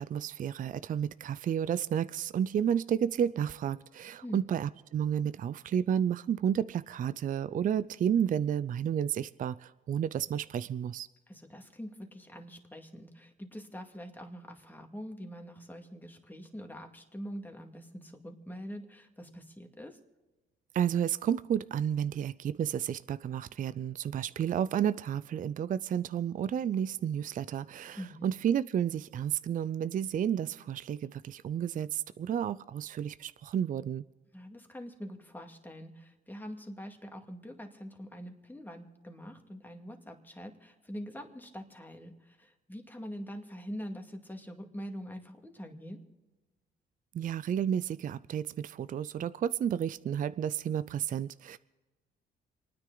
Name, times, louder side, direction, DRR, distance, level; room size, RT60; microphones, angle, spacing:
voice 1, 0.0-11.1 20.7-34.0 47.1-51.6, right 9 dB, 45° right, 0.4 m, -31 dB
voice 2, 11.3-20.0 28.0-28.3 34.3-46.0, equal, 10° left, 2.2 m, -44 dB
28.5 x 9.8 x 3.9 m
cardioid pair, 90°, 20 cm